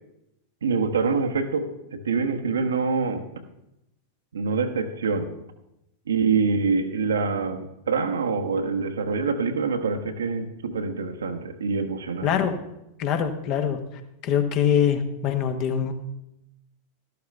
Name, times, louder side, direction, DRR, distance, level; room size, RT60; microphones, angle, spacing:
voice 1, 0.6-3.3 4.3-5.3 6.1-12.3, right 4 dB, 70° right, 8 dB, 1.1 m, -25 dB
voice 2, 12.2-12.5 13.0-13.8 14.2-15.9, left 8 dB, 40° left, 8 dB, 1.3 m, -23 dB
13.0 x 12.0 x 3.4 m, 0.87 s
figure-of-eight pair, 90°, 0 cm